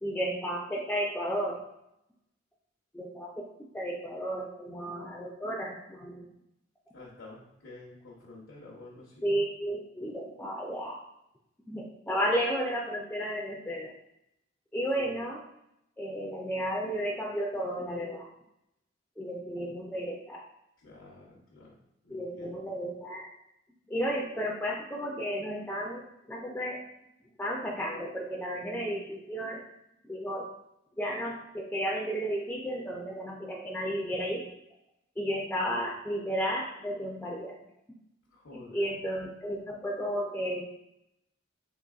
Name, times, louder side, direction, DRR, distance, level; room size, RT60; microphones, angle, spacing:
voice 1, 0.0-1.6 2.9-6.3 9.2-11.0 11.7-13.9 14.7-15.4 16.0-18.3 19.2-20.4 22.1-23.3 23.9-26.8 27.4-29.6 30.0-30.5 31.0-34.5 35.2-37.6 38.5-40.6, equal, 10° left, -3 dB, 0.3 m, -33 dB
voice 2, 6.9-9.2 15.0-15.1 20.8-21.8 22.0-22.7 38.3-38.9, left 2 dB, 80° left, -5 dB, 0.7 m, -50 dB
3.9 x 2.9 x 2.3 m, 0.81 s
head